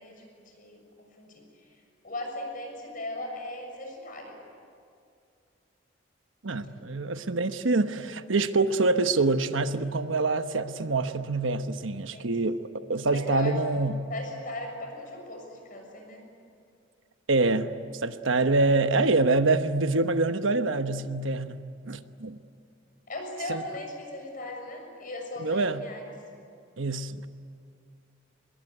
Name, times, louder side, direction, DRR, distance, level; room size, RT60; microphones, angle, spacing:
voice 1, 0.0-1.7 2.0-4.4 12.1-12.5 13.1-13.5 14.1-16.2 18.8-18.9 23.1-26.0, left 2 dB, 45° left, 2 dB, 6.7 m, -38 dB
voice 2, 6.4-14.0 17.3-21.6 21.9-22.4 23.5-23.6 25.4-25.8 26.8-27.3, right 3 dB, 90° right, 10 dB, 1.1 m, -26 dB
25.5 x 21.5 x 10.0 m, 2.3 s
head